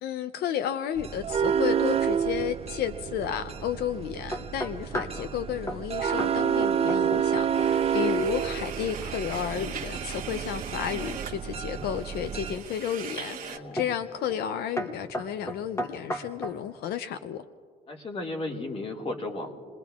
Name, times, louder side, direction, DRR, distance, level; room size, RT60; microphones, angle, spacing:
voice 1, 0.0-17.4, left 9 dB, 85° left, 0.5 m, -32 dB
sound 1, 1.0-12.6, right 8 dB, 40° right, 0.5 m, -29 dB
sound 2, 4.3-5.2 5.7-5.9 6.2-6.4 6.6-7.3 7.6-8.0 11.3-12.0 12.6-13.0 13.8-14.0 14.3-14.5 14.8-16.6, equal, 15° left, 1.1 m, -35 dB
voice 2, 4.9-5.3 8.0-8.2 13.4-13.9 17.9-19.6, left 2 dB, 35° left, 1.9 m, -35 dB
sound 3, 7.5-13.6, right 8 dB, 65° right, 1.0 m, -40 dB
28.5 x 20.5 x 2.4 m
cardioid pair, 125°, 16 cm